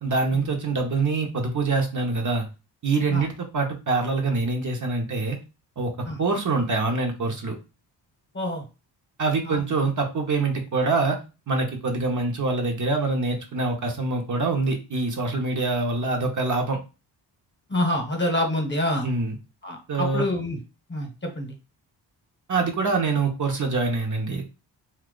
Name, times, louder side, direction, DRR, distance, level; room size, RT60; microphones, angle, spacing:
voice 1, 0.0-2.5 2.8-5.4 5.8-5.9 6.2-7.6 9.2-11.2 11.5-16.8 19.0-19.4 19.9-20.2 22.5-24.4, right 3 dB, 45° right, 2 dB, 0.8 m, -25 dB
voice 2, 17.7-19.1 19.6-20.6 20.9-21.5, left 1 dB, 25° left, 3 dB, 1.0 m, -27 dB
2.8 x 2.3 x 3.7 m, 0.29 s
cardioid pair, 95°, 43 cm